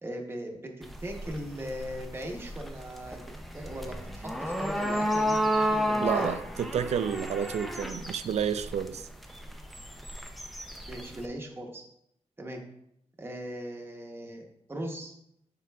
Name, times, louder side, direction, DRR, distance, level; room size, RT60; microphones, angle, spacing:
voice 1, 0.0-6.3 10.9-11.8 12.4-12.6 13.2-15.1, equal, 20° right, 1 dB, 0.9 m, -39 dB
sound 1, 0.8-11.3, equal, ahead, 0.4 m, -32 dB
voice 2, 6.0-9.1, right 8 dB, 75° right, 12 dB, 0.4 m, -30 dB
7.4 x 5.6 x 2.3 m, 0.75 s
wide cardioid pair, 155°, 12 cm